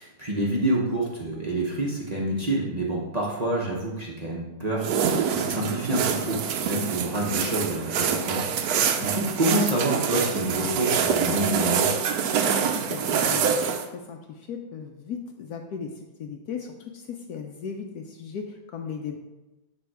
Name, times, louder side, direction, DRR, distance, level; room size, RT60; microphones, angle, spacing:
voice 1, 0.0-12.0, right 1 dB, 40° right, -3 dB, 0.5 m, -28 dB
sound 1, 4.8-13.9, right 7 dB, 75° right, 0.8 m, -25 dB
voice 2, 12.7-19.2, left 6 dB, 75° left, 4 dB, 0.8 m, -37 dB
9.2 x 3.5 x 4.7 m, 1.0 s
omnidirectional pair, 2.3 m